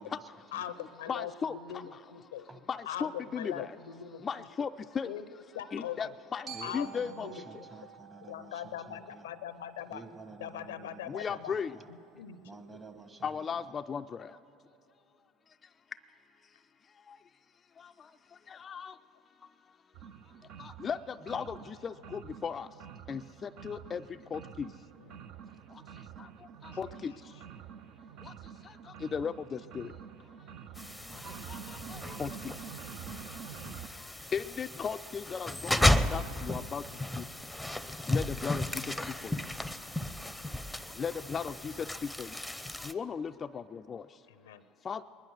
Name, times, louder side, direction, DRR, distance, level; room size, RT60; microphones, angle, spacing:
voice 1, 0.0-0.6 2.5-2.6 6.5-9.3 9.9-11.9 12.4-13.7, right 3 dB, 25° right, 8 dB, 1.3 m, -51 dB
voice 2, 0.5-2.5 2.9-4.5 5.0-5.3 5.5-6.1 6.6-7.6 8.2-10.0 10.4-11.5 11.9-12.4 12.7-12.8 25.0-25.3 26.8-27.0 41.9-42.0 44.3-44.6, left 10 dB, 90° left, 13 dB, 0.6 m, -42 dB
voice 3, 1.1-2.0 2.7-3.8 4.2-5.1 5.7-7.3 7.5-7.6 11.1-11.7 13.2-14.4 15.5-16.0 16.4-17.2 17.8-19.0 19.4-19.8 20.0-22.8 23.1-24.8 25.7-27.4 28.2-37.3 38.1-39.5 40.9-42.4 42.8-44.3 44.8-45.0, left 6 dB, 35° left, 8 dB, 0.3 m, -38 dB
Glockenspiel, 6.5-10.6, right 6 dB, 45° right, 2.8 m, -50 dB
sound 1, 19.9-33.9, right 8 dB, 65° right, 0.5 m, -48 dB
sound 2, 30.8-42.9, left 1 dB, ahead, 0.6 m, -34 dB
21.5 x 10.5 x 6.4 m, 2.8 s
hypercardioid pair, 85°, 0 cm